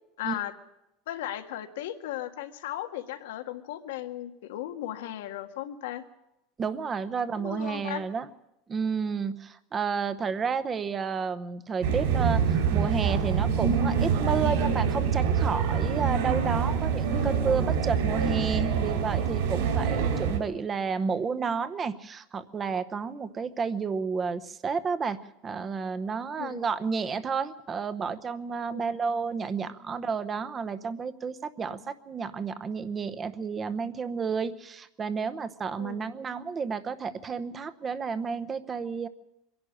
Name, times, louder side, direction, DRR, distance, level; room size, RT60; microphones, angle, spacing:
voice 1, 0.2-0.5 1.1-6.0 7.3-8.0 17.1-17.4 19.8-19.9 26.4-26.7 28.7-29.0 35.8-36.0, left 13 dB, 90° left, 7 dB, 1.8 m, -36 dB
voice 2, 6.6-8.3 8.7-25.2 25.4-39.1, right 5 dB, 20° right, 13 dB, 0.8 m, -31 dB
sound 1, 11.8-20.4, right 6 dB, 65° right, 4.5 m, -26 dB
23.5 x 11.5 x 9.9 m, 0.89 s
supercardioid pair, 165°, 0 cm